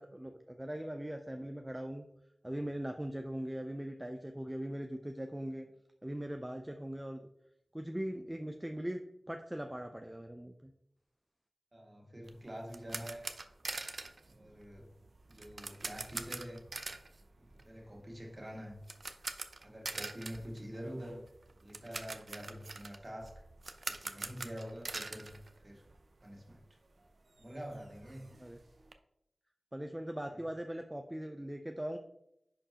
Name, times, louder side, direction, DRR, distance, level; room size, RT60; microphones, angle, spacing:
voice 1, 0.0-2.1 2.4-5.7 6.0-7.2 7.7-9.0 9.3-10.7 28.4-28.6 29.7-32.0, right 1 dB, 10° right, 4 dB, 0.5 m, -40 dB
voice 2, 11.7-13.3 14.3-14.9 15.3-16.6 17.4-18.8 19.6-21.2 21.6-23.4 23.9-25.8 26.2-26.6 27.4-28.3 30.3-30.4, equal, 35° right, -1 dB, 2.0 m, -46 dB
sound 1, 12.3-26.2 26.5-26.6 27.0-27.1 27.4-28.9, right 3 dB, 60° right, 0.6 m, -44 dB
10.5 x 4.5 x 2.9 m, 0.79 s
wide cardioid pair, 80°, 0 cm